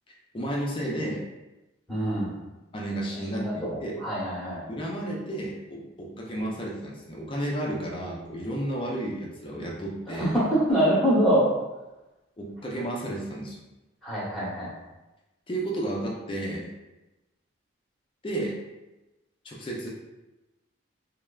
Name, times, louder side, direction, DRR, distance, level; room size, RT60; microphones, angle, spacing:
voice 1, 0.3-1.2 2.7-4.0 4.7-10.3 12.4-13.6 15.5-16.7 18.2-18.6 19.4-19.9, right 1 dB, 25° left, -3 dB, 0.4 m, -32 dB
voice 2, 1.9-2.3 3.3-4.6 10.1-11.5 14.0-14.7, equal, ahead, -10 dB, 0.9 m, -24 dB
3.2 x 2.0 x 2.3 m, 1.0 s
head